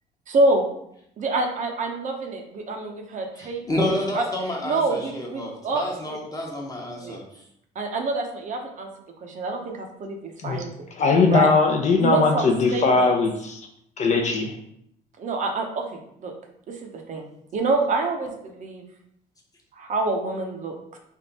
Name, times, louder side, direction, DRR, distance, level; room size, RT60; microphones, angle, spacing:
voice 1, 0.3-0.6 1.2-4.3 4.6-6.2 7.0-7.2 7.8-8.9 9.2-10.2 10.4-10.7 11.3-11.5 12.0-13.1 15.2-16.3 16.7-18.8 19.7-21.0, right 2 dB, 45° right, 3 dB, 0.7 m, -27 dB
voice 2, 3.3-7.4, left 1 dB, 20° left, 0 dB, 0.9 m, -29 dB
voice 3, 11.0-13.6 14.0-14.5, left 4 dB, 45° left, 3 dB, 0.6 m, -20 dB
3.5 x 2.5 x 4.0 m, 0.73 s
cardioid pair, 110°, 17 cm